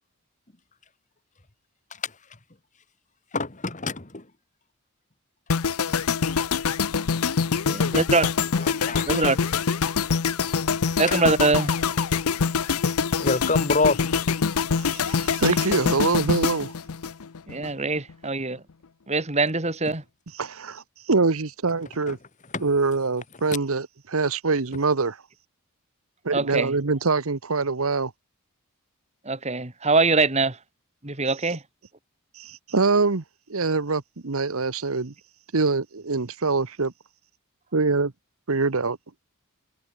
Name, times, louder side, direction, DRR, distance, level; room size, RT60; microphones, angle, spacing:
voice 1, 3.3-4.3 8.7-9.3 13.2-14.0 22.1-22.2 22.5-22.7, left 3 dB, 35° left, 2.1 m, -26 dB
sound 1, 5.5-17.7 17.9-18.2, left 5 dB, 80° left, 0.7 m, -25 dB
voice 2, 7.7-8.3 9.1-9.4 11.0-11.7 17.5-18.6 19.1-20.0 26.3-26.8 29.2-30.6 31.0-31.6, right 3 dB, 30° right, 2.2 m, -23 dB
voice 3, 14.8-16.7 20.4-22.2 22.6-25.2 26.2-28.1 32.4-33.2 33.5-35.1 35.5-36.9 37.7-38.1 38.5-39.0, right 4 dB, 70° right, 1.0 m, -24 dB
head